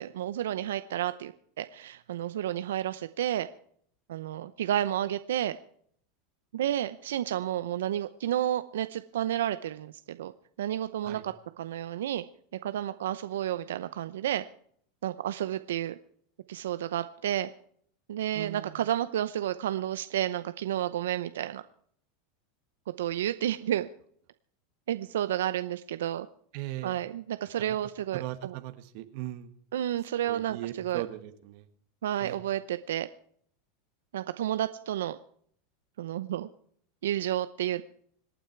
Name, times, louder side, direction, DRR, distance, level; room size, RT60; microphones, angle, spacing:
voice 1, 0.0-1.3 1.6-3.5 4.1-5.6 6.5-10.3 10.6-12.2 12.6-14.4 15.0-16.0 16.5-17.5 18.1-21.6 23.0-23.9 24.9-26.3 26.8-28.6 29.7-31.0 32.0-33.1 34.1-35.2 36.0-36.5 37.0-37.8, right 11 dB, 85° right, 12 dB, 0.7 m, -31 dB
voice 2, 18.3-18.8 26.5-27.0 27.6-27.8 28.1-29.5 30.2-31.7 32.2-32.4, right 15 dB, 60° right, 8 dB, 1.5 m, -38 dB
26.0 x 9.2 x 4.6 m, 0.63 s
supercardioid pair, 120°, 0 cm